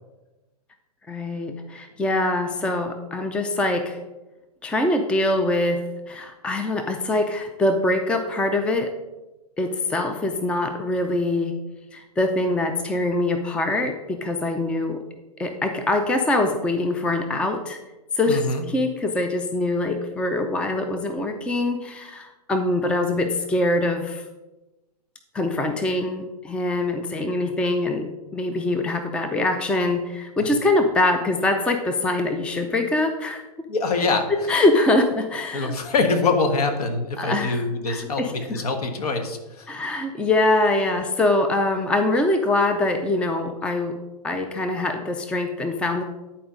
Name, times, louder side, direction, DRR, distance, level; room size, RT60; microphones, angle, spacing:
voice 1, 1.1-4.0 4.6-8.9 9.6-11.6 11.9-15.0 15.4-17.8 18.1-24.2 25.3-33.4 34.3-35.7 37.2-38.6 39.7-43.9 44.2-46.0, left 2 dB, 5° left, 6 dB, 0.4 m, -23 dB
voice 2, 18.3-18.7 30.4-30.5 33.7-34.3 35.5-39.7, left 3 dB, 65° left, 6 dB, 1.4 m, -24 dB
10.0 x 4.4 x 5.1 m, 1.1 s
hypercardioid pair, 120°, 21 cm